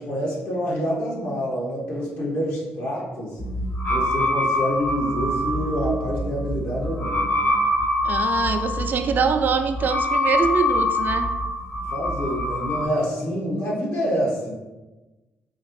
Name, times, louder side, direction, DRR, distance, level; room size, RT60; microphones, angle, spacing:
voice 1, 0.0-3.4 3.8-7.6 11.8-14.5, equal, 65° left, -5 dB, 1.5 m, -27 dB
sound 1, 3.4-12.9, left 1 dB, 45° left, 1.0 m, -24 dB
voice 2, 8.0-11.4, right 5 dB, 50° right, 7 dB, 0.3 m, -24 dB
4.3 x 2.4 x 3.2 m, 1.1 s
supercardioid pair, 70°, 4 cm